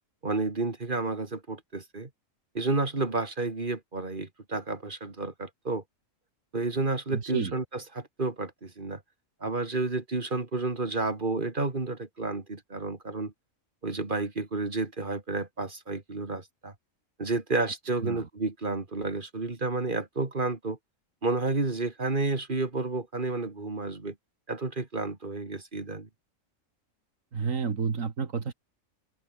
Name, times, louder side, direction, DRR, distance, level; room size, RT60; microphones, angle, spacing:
voice 1, 0.2-2.1 2.5-5.8 6.5-9.0 9.4-13.3 13.8-16.7 17.2-20.8 21.2-24.1 24.5-26.1, right 3 dB, 40° right, 2.9 m, -31 dB
voice 2, 7.1-7.5 18.0-18.3 27.3-28.5, right 5 dB, 75° right, 2.2 m, -30 dB
open air
omnidirectional pair, 1.4 m